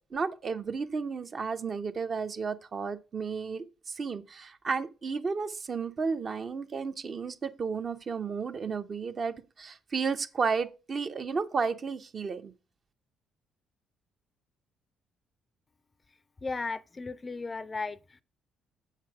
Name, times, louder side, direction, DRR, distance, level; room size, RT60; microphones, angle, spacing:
voice 1, 0.1-12.5, right 5 dB, 40° right, 0.6 m, -33 dB
voice 2, 16.4-18.2, left 3 dB, 25° left, 0.4 m, -35 dB
7.4 x 4.5 x 4.6 m
figure-of-eight pair, 45°, 0 cm